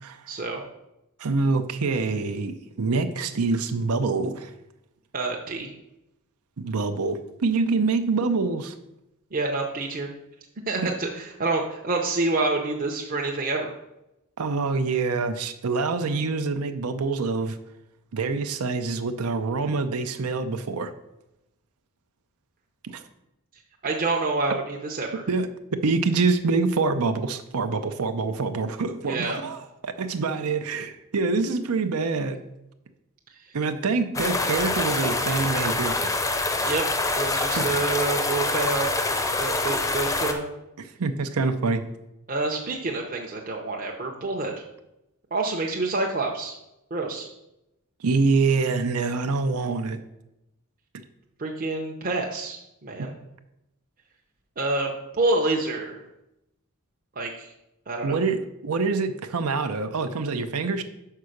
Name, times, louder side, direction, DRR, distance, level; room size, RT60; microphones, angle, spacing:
voice 1, 0.3-0.6 5.1-5.7 9.3-10.1 10.7-13.7 23.8-25.2 29.0-29.4 36.6-36.8 37.2-38.9 39.4-40.5 42.3-44.6 45.3-46.5 46.9-47.3 51.4-53.1 54.6-56.0 57.2-57.5 57.9-58.2, right 3 dB, 40° right, 0 dB, 0.7 m, -27 dB
voice 2, 1.2-4.5 6.6-8.7 10.8-10.9 14.4-17.6 18.1-20.9 22.8-23.0 25.3-32.4 33.5-36.1 37.6-37.7 40.8-41.8 48.0-50.0 53.0-53.1 58.0-60.8, right 4 dB, 85° right, 8 dB, 0.6 m, -26 dB
sound 1, 34.1-40.3, left 2 dB, 15° left, 0.6 m, -25 dB
5.6 x 4.7 x 6.4 m, 0.89 s
head